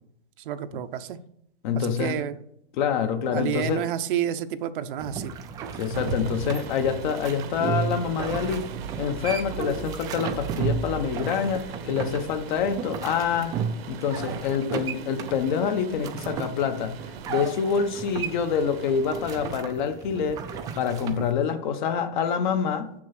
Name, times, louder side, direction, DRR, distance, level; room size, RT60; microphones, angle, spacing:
voice 1, 0.5-1.2 1.8-2.3 3.3-5.3, right 10 dB, 60° right, 0.7 m, -29 dB
voice 2, 1.6-2.2 2.7-3.8 5.8-8.6 9.0-13.6 13.9-17.0 17.3-20.4 20.8-22.9, left 7 dB, 50° left, 1.0 m, -26 dB
sound 1, 5.0-21.3, right 6 dB, 10° right, 0.4 m, -34 dB
sound 2, 5.9-19.6, right 6 dB, 75° right, 1.1 m, -39 dB
6.8 x 6.2 x 5.9 m
supercardioid pair, 155°, 30 cm